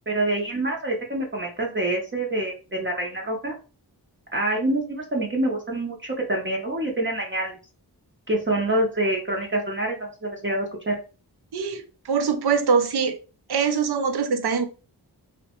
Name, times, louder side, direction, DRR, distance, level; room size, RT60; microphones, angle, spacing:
voice 1, 0.1-3.5 4.3-7.6 8.3-11.0, right 1 dB, 30° right, -1 dB, 0.6 m, -26 dB
voice 2, 11.5-13.2 13.5-14.6, right 5 dB, 70° right, 9 dB, 0.6 m, -23 dB
2.8 x 2.1 x 2.8 m, 0.34 s
wide cardioid pair, 110°, 41 cm